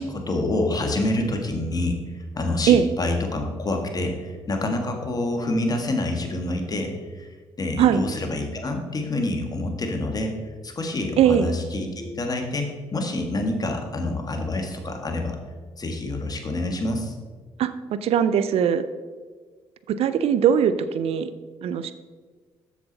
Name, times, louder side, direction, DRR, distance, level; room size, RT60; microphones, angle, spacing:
voice 1, 0.0-7.3 7.6-10.3 10.6-15.4 15.8-17.1, left 2 dB, 35° left, 3 dB, 1.6 m, -27 dB
voice 2, 11.2-11.5 17.6-17.7 18.0-18.8 19.9-21.3 21.6-21.9, right 9 dB, 70° right, 12 dB, 0.5 m, -20 dB
7.2 x 6.9 x 4.0 m, 1.5 s
supercardioid pair, 60°, 11 cm